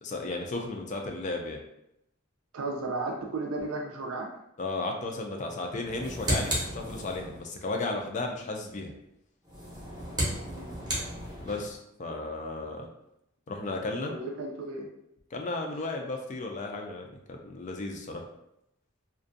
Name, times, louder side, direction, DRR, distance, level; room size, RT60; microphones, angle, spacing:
voice 1, 0.0-1.6 4.6-8.9 11.4-12.9 13.5-14.1 15.3-18.3, left 2 dB, 35° left, 2 dB, 0.3 m, -34 dB
voice 2, 2.5-4.3 10.4-10.7 14.1-14.9, right 2 dB, 75° right, 1 dB, 0.4 m, -34 dB
sound 1, 5.8-7.5 9.4-11.8, right 1 dB, 20° right, 0.7 m, -33 dB
2.5 x 2.1 x 2.5 m, 0.81 s
head